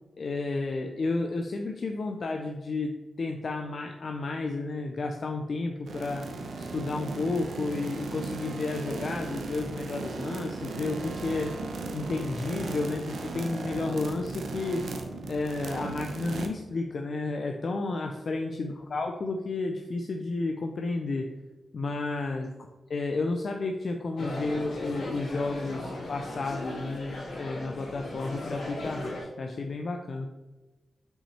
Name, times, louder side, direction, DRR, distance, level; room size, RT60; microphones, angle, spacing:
voice 1, 0.2-6.3 6.6-11.6 11.9-14.9 15.3-21.3 21.7-22.5 22.9-30.3, left 3 dB, 55° left, 4 dB, 0.5 m, -32 dB
sound 1, 5.9-16.5, right 3 dB, 85° right, 0.7 m, -36 dB
sound 2, 24.2-29.2, left 2 dB, 80° left, 2.1 m, -37 dB
5.9 x 5.4 x 3.2 m, 1.1 s
wide cardioid pair, 105°, 0 cm